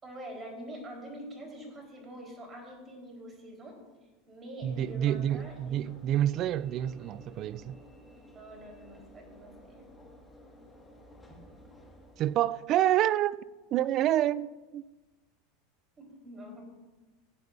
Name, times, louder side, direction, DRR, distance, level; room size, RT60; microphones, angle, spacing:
voice 1, 0.0-3.8 4.3-5.9 8.2-9.9 16.0-16.6, right 1 dB, 25° right, 4.3 m, -45 dB
Train / Engine / Alarm, 4.6-12.8, equal, 10° left, 2.0 m, -54 dB
voice 2, 4.6-7.8 12.2-14.8, right 12 dB, 45° right, 0.3 m, -28 dB
16.5 x 9.5 x 2.7 m
hypercardioid pair, 100°, 0 cm